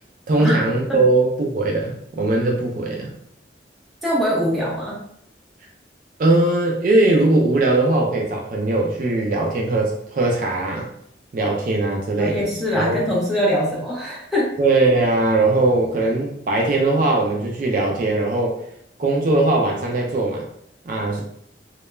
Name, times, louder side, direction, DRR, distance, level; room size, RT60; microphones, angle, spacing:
voice 1, 0.3-3.1 6.2-10.9 11.3-12.5 12.7-13.0 14.6-18.6 19.0-20.4 20.9-21.2, right 2 dB, 50° right, 0 dB, 0.3 m, -20 dB
voice 2, 4.0-5.0 12.2-14.5, equal, ahead, -6 dB, 0.6 m, -22 dB
2.2 x 2.0 x 3.1 m, 0.72 s
head